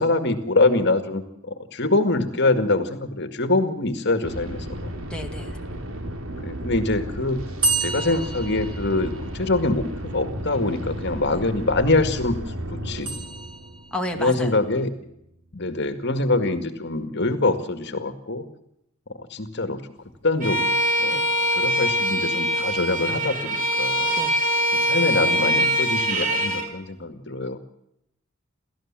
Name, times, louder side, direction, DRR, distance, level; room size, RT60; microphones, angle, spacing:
voice 1, 0.0-5.0 6.4-7.4 7.8-9.9 10.1-13.1 14.1-14.9 15.5-18.4 19.2-19.8 20.2-21.2 21.5-24.1 24.7-27.6, left 2 dB, 55° left, 8 dB, 2.1 m, -24 dB
sound 1, 4.2-15.0, right 1 dB, 80° right, 2.9 m, -34 dB
voice 2, 5.1-5.5 13.9-14.5 21.1-21.2 24.2-24.4, left 1 dB, 5° left, 1 dB, 2.1 m, -31 dB
sound 2, 7.6-9.6 13.0-14.1, right 3 dB, 25° right, 3.0 m, -29 dB
Bowed string instrument, 20.4-26.7, equal, 40° right, 3.6 m, -23 dB
29.0 x 14.5 x 7.6 m, 0.80 s
head